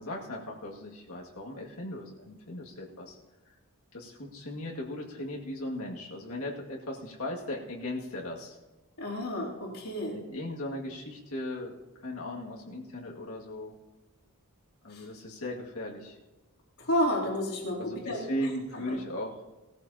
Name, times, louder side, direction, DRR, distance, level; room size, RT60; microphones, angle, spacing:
voice 1, 0.0-3.2 3.5-3.6 3.9-8.6 10.1-13.7 14.8-16.2 17.8-19.4, left 1 dB, 70° left, -2 dB, 2.1 m, -37 dB
voice 2, 9.0-10.1 14.9-15.0 16.8-18.3 18.9-19.0, left 1 dB, 85° left, -5 dB, 3.1 m, -31 dB
18.5 x 14.0 x 2.8 m, 1.1 s
head